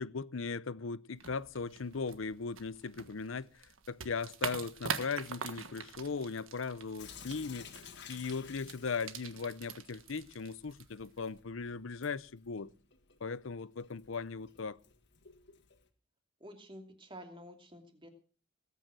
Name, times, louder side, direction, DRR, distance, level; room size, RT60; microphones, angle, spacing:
voice 1, 0.0-7.7 8.1-12.7 13.2-14.8, left 5 dB, 75° left, 0.7 m, -38 dB
sound 1, 1.2-11.4, right 6 dB, 85° right, 1.5 m, -45 dB
Sink (filling or washing) / Drip, 7.0-15.9, left 7 dB, 60° left, 2.0 m, -55 dB
voice 2, 16.4-18.1, equal, 25° right, 2.7 m, -50 dB
20.0 x 9.2 x 6.2 m
head